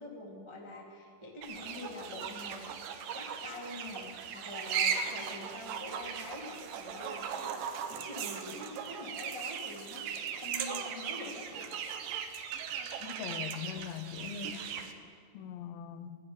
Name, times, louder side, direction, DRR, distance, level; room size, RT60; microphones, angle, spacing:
voice 1, 0.0-4.1 4.3-11.7, left 2 dB, 25° right, -2 dB, 0.6 m, -45 dB
sound 1, 1.4-14.9, right 7 dB, 75° right, 2.3 m, -38 dB
voice 2, 13.0-14.6 15.3-16.2, left 9 dB, 85° left, 11 dB, 2.4 m, -41 dB
12.5 x 11.5 x 8.7 m, 2.2 s
omnidirectional pair, 4.1 m